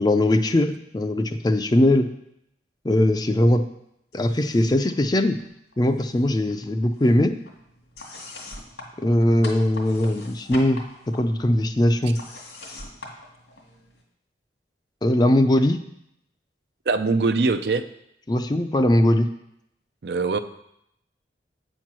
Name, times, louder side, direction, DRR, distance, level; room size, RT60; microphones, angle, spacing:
voice 1, 0.0-2.1 2.8-3.6 4.1-5.4 5.8-7.3 9.0-12.2 15.0-15.8 18.3-19.3, left 1 dB, 25° left, 8 dB, 0.5 m, -20 dB
sound 1, 4.1-4.9 5.2-6.2 6.5-14.0, left 2 dB, 85° left, 2.1 m, -42 dB
voice 2, 16.9-17.8 20.0-20.4, right 3 dB, 65° right, 9 dB, 0.5 m, -22 dB
8.8 x 4.5 x 6.1 m, 0.78 s
head